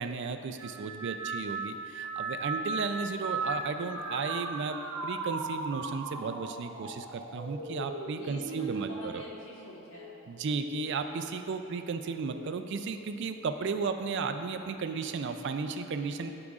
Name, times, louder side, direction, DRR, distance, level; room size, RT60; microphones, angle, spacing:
voice 1, 0.0-4.8 5.0-9.2 10.3-16.3, right 4 dB, 55° right, 8 dB, 0.3 m, -34 dB
sound 1, 0.6-10.2 10.6-11.2 12.2-12.5, right 3 dB, 85° right, 0.9 m, -38 dB
voice 2, 8.1-10.4, equal, 60° left, -5 dB, 1.5 m, -46 dB
13.5 x 4.9 x 2.4 m, 3.0 s
head